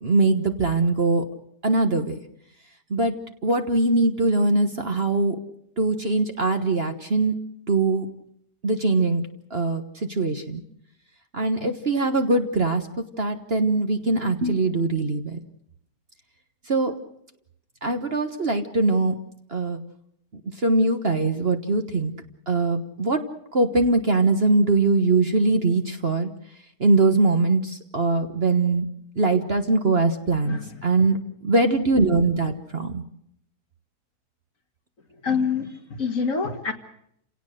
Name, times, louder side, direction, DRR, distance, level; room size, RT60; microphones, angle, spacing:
voice 1, 0.0-1.2 1.6-2.1 2.9-3.1 3.4-5.4 5.8-7.4 7.7-8.1 8.6-10.6 11.3-12.8 13.2-15.4 16.7-16.9 17.8-19.2 19.5-19.8 20.6-22.1 22.5-23.2 23.5-26.3 26.8-28.9 29.2-31.2 31.4-33.0, right 3 dB, 40° right, 7 dB, 1.4 m, -22 dB
voice 2, 35.2-35.7 36.0-36.7, left 5 dB, 50° left, 5 dB, 2.3 m, -25 dB
29.5 x 17.5 x 6.6 m, 0.73 s
omnidirectional pair, 1.8 m